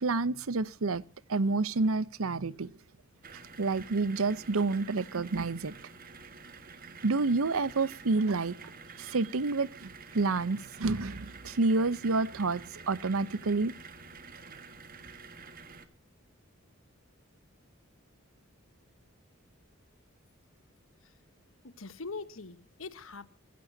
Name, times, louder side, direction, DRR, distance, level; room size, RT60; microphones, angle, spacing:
voice 1, 0.0-1.0 1.3-2.7 3.6-5.7 7.0-8.6 9.0-13.7, right 3 dB, 80° right, 0.8 m, -29 dB
sound 1, 3.2-15.9, right 4 dB, 40° right, 1.7 m, -49 dB
voice 2, 21.6-23.3, left 4 dB, 75° left, 1.3 m, -42 dB
25.0 x 14.5 x 2.8 m
head